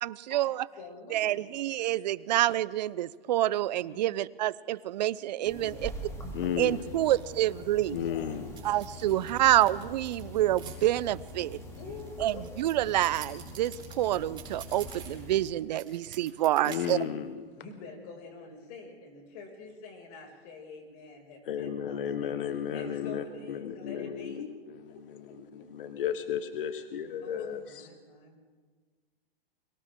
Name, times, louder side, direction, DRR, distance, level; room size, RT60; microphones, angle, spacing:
voice 1, 0.0-0.6 1.1-5.9 6.6-8.0 8.6-11.6 12.2-17.0, right 14 dB, 45° right, 0.7 m, -27 dB
voice 2, 0.8-1.6 3.8-4.1 5.4-5.7 8.0-8.3 11.8-12.4 17.6-22.3 22.7-24.4 24.9-25.0 25.3-25.4 27.2-28.4, left 4 dB, 40° left, 6.3 m, -46 dB
sound 1, 5.4-15.4, left 1 dB, 10° left, 3.0 m, -44 dB
voice 3, 6.3-6.9 7.9-8.5 16.6-17.4 21.5-24.5 25.8-27.9, left 8 dB, 65° left, 1.4 m, -33 dB
sound 2, 8.6-10.7 11.3-15.5 15.8-16.9, right 8 dB, 15° right, 4.5 m, -48 dB
30.0 x 23.5 x 3.8 m
hypercardioid pair, 145°, 29 cm